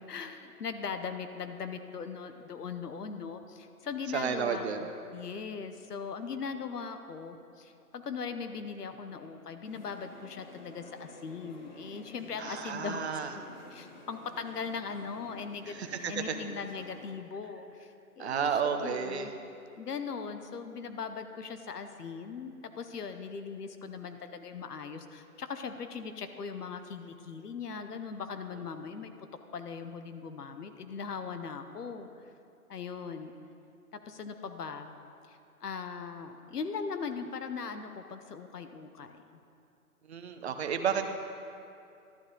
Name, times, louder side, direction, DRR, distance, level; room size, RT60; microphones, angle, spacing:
voice 1, 0.1-13.4 13.7-19.3 19.8-29.1 29.5-32.1 32.7-33.3 34.1-34.9 35.3-39.2, left 5 dB, 90° left, 8 dB, 1.0 m, -39 dB
voice 2, 4.1-4.9 12.4-13.3 15.7-16.4 18.2-19.3 40.1-41.2, right 7 dB, 45° right, 6 dB, 0.8 m, -32 dB
sound 1, 9.6-17.1, left 2 dB, 30° left, 0.9 m, -52 dB
12.0 x 9.4 x 3.8 m, 2.6 s
hypercardioid pair, 160°, 45 cm